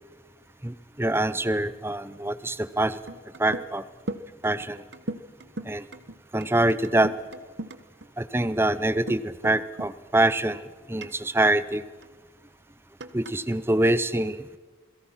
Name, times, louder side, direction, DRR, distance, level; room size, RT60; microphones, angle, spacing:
voice 1, 0.6-3.0 3.4-3.8 4.4-4.8 5.7-5.8 6.3-7.1 8.2-11.8 13.1-14.6, right 1 dB, 10° right, 15 dB, 0.7 m, -25 dB
sound 1, 2.7-2.8 3.1-3.7 4.0-8.1 9.1-9.5 9.8-9.9 10.5-10.6 11.0-12.1 13.0-13.8, right 2 dB, 60° right, 1.2 m, -38 dB
28.0 x 22.0 x 5.8 m, 1.4 s
head